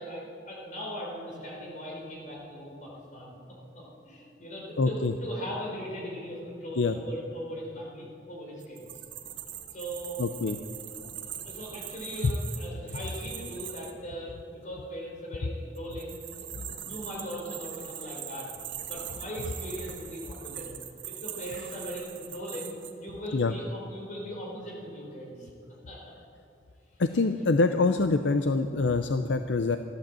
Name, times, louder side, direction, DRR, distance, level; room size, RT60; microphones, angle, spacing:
voice 1, 0.0-3.4 3.7-8.9 9.7-10.2 11.5-16.2 16.6-18.5 18.9-20.7 21.0-25.5 25.9-26.1, equal, 40° left, -3 dB, 4.3 m, -39 dB
voice 2, 4.8-5.1 6.8-6.9 10.2-10.6 23.3-23.5 27.0-29.8, left 3 dB, 70° left, 8 dB, 0.5 m, -25 dB
sound 1, 8.6-13.9 15.7-22.9, right 10 dB, 80° right, 1.4 m, -41 dB
14.5 x 11.5 x 7.5 m, 2.5 s
head